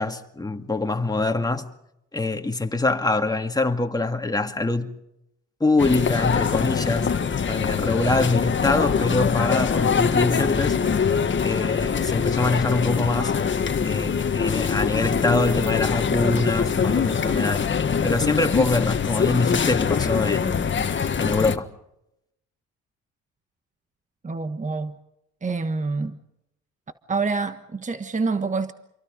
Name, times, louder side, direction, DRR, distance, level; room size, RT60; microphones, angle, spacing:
voice 1, 0.0-1.7 2.1-5.0 5.6-7.1 7.5-10.8 11.4-13.4 13.8-17.7 18.0-20.7 21.2-21.7, left 2 dB, 10° left, 2.3 m, -24 dB
sound 1, 5.8-21.6, left 6 dB, 40° left, 1.6 m, -23 dB
voice 2, 24.2-25.0 25.4-26.2 27.1-28.7, right 4 dB, 25° right, 1.3 m, -26 dB
28.0 x 23.5 x 5.2 m
cardioid pair, 90°, 30 cm